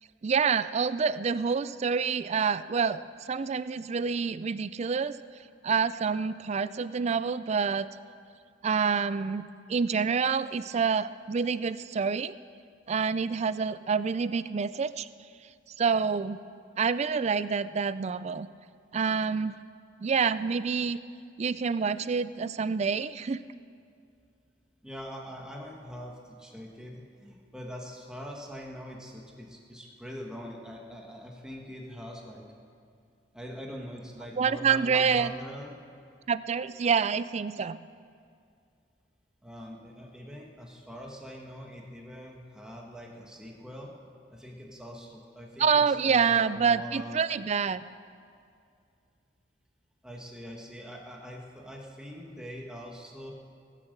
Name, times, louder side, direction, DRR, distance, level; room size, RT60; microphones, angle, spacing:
voice 1, 0.2-5.1 5.6-7.9 8.6-9.4 9.7-12.3 12.9-15.1 15.8-16.4 16.8-18.5 18.9-19.6 20.0-21.0 21.4-23.4 34.4-35.3 36.3-37.8 45.6-47.9, right 6 dB, 35° right, 15 dB, 0.4 m, -27 dB
voice 2, 24.8-32.5 33.3-35.7 39.4-43.9 44.3-47.2 50.0-53.3, equal, 5° right, -1 dB, 1.5 m, -43 dB
21.0 x 7.4 x 6.7 m, 2.4 s
head